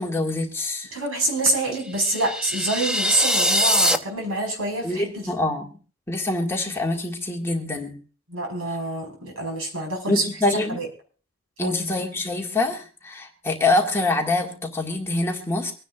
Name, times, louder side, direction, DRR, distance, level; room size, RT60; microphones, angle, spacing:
voice 1, 0.0-0.9 4.8-5.7 6.1-8.0 10.1-10.8 11.6-15.7, left 2 dB, 10° left, 0 dB, 1.9 m, -25 dB
voice 2, 0.9-5.3 8.3-10.2 10.7-10.9 11.6-11.8, right 2 dB, 75° right, 3 dB, 4.9 m, -26 dB
sound 1, 1.9-4.0, equal, 5° right, 0.7 m, -22 dB
24.5 x 9.9 x 2.4 m, 0.38 s
head